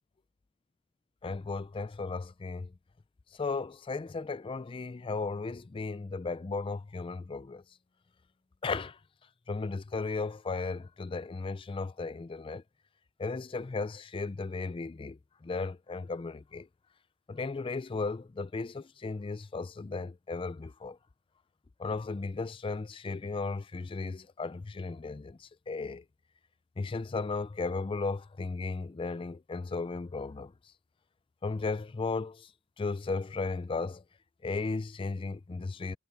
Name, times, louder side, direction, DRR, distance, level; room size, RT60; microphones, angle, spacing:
voice 1, 1.2-2.7 3.3-7.6 8.6-9.0 9.5-12.6 13.2-16.7 17.3-21.0 21.8-26.0 26.8-30.5 31.4-32.5 32.8-34.0 34.4-36.0, left 3 dB, 25° left, 0.3 m, -35 dB
head